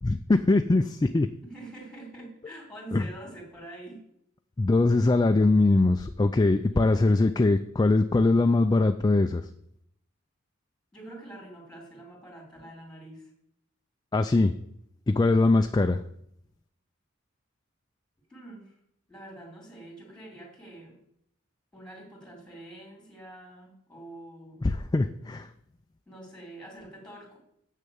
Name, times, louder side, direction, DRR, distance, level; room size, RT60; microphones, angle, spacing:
voice 1, 0.0-1.3 2.9-3.1 4.6-9.4 14.1-14.5 15.1-16.0 24.6-25.5, left 2 dB, 20° left, 8 dB, 0.3 m, -22 dB
voice 2, 1.4-4.0 6.7-7.6 10.9-13.3 18.3-18.7 19.1-21.0 21.7-24.7 26.1-27.4, right 1 dB, 5° left, 0 dB, 2.9 m, -46 dB
7.5 x 6.7 x 7.0 m, 0.74 s
head